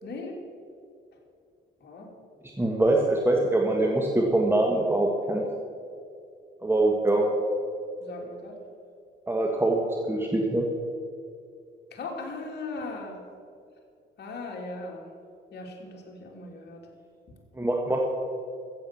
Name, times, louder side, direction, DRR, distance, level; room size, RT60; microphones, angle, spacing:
voice 1, 0.0-0.4 1.8-2.1 7.1-7.2 8.0-8.6 11.9-13.2 14.2-15.1 15.5-16.8, left 3 dB, 55° left, 0 dB, 3.1 m, -38 dB
voice 2, 2.6-5.4 6.6-7.3 9.3-10.6 17.6-18.0, right 2 dB, 10° right, 0 dB, 1.6 m, -24 dB
14.5 x 8.1 x 7.0 m, 2.4 s
cardioid pair, 90°, 20 cm